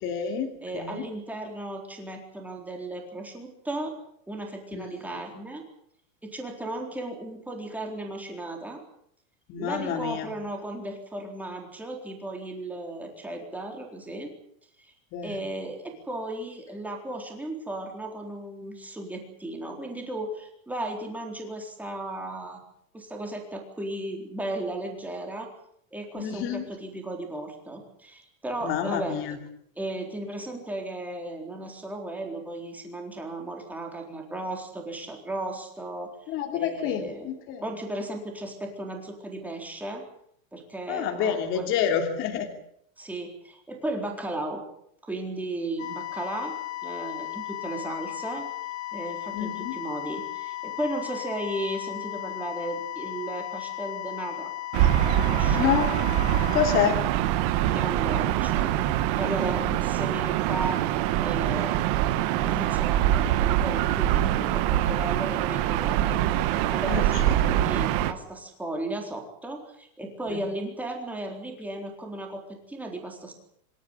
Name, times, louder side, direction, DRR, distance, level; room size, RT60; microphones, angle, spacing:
voice 1, 0.0-0.5 0.7-1.0 4.7-4.8 9.5-10.3 15.1-15.3 26.1-26.7 28.6-29.4 36.3-37.6 40.9-42.5 49.3-49.7 55.5-55.9 56.5-57.0 66.9-67.5 70.3-70.4, left 8 dB, 30° left, 4 dB, 3.0 m, -28 dB
voice 2, 0.6-3.9 4.3-5.6 6.2-8.8 9.6-14.3 14.8-14.9 15.2-22.6 22.9-25.5 25.9-29.2 29.8-37.3 37.6-40.0 40.5-41.7 43.0-44.6 45.1-46.5 46.8-48.5 48.9-54.5 55.2-55.7 57.7-58.8 59.2-60.8 61.2-61.8 62.4-66.2 66.7-73.3, right 1 dB, 5° right, 2 dB, 4.0 m, -35 dB
sound 1, 45.8-56.8, left 16 dB, 65° left, 3.1 m, -36 dB
Gull seagull / Ocean, 54.7-68.1, right 13 dB, 35° right, 1.3 m, -24 dB
26.5 x 13.0 x 10.0 m, 0.69 s
supercardioid pair, 165°, 41 cm